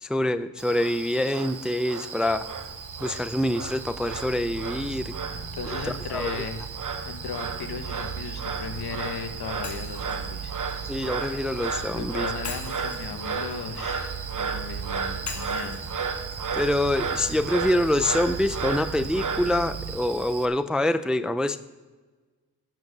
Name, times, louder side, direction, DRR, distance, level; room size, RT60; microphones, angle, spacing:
voice 1, 0.0-2.5 3.0-5.1 6.1-6.4 10.9-12.3 16.5-21.6, left 1 dB, ahead, 11 dB, 0.4 m, -25 dB
Frog, 0.6-20.5, right 5 dB, 50° right, 1.2 m, -34 dB
sound 1, 2.2-19.9, right 6 dB, 85° right, 3.3 m, -39 dB
voice 2, 5.3-6.6 7.0-10.5 11.9-15.8, left 6 dB, 75° left, 6 dB, 1.5 m, -36 dB
Shatter, 9.6-11.7 12.4-14.5 15.3-17.3, left 4 dB, 45° left, 2.5 m, -42 dB
11.0 x 7.8 x 6.7 m, 1.3 s
cardioid pair, 100°, 39 cm